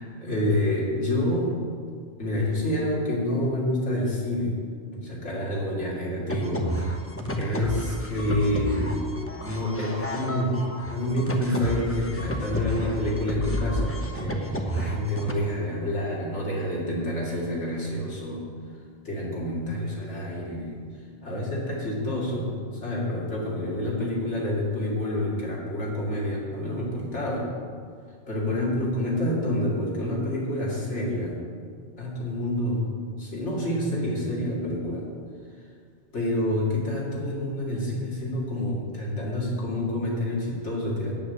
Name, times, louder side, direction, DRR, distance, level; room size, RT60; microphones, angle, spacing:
voice 1, 0.0-1.5 2.2-4.6 4.9-6.9 7.4-8.9 9.5-18.5 19.0-20.8 21.2-22.5 22.8-27.4 28.3-31.4 32.0-32.9 33.2-35.0 36.1-41.1, left 1 dB, 80° left, -4 dB, 2.7 m, -28 dB
sound 1, 6.3-15.3, left 1 dB, 15° left, 0.9 m, -31 dB
8.9 x 8.9 x 6.6 m, 2.1 s
omnidirectional pair, 1.2 m